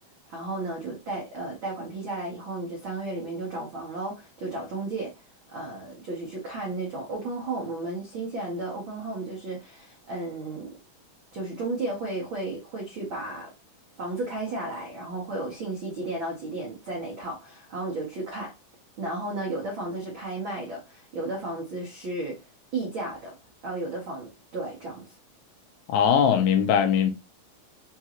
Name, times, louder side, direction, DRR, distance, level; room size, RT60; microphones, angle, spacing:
voice 1, 0.3-5.2 5.5-10.7 11.3-13.5 14.0-18.5 19.0-22.4 22.7-23.4 23.6-25.1, right 2 dB, 85° right, 1.1 m, -33 dB
voice 2, 25.9-27.1, left 8 dB, 80° left, 1.7 m, -20 dB
5.3 x 2.5 x 2.9 m
omnidirectional pair, 3.9 m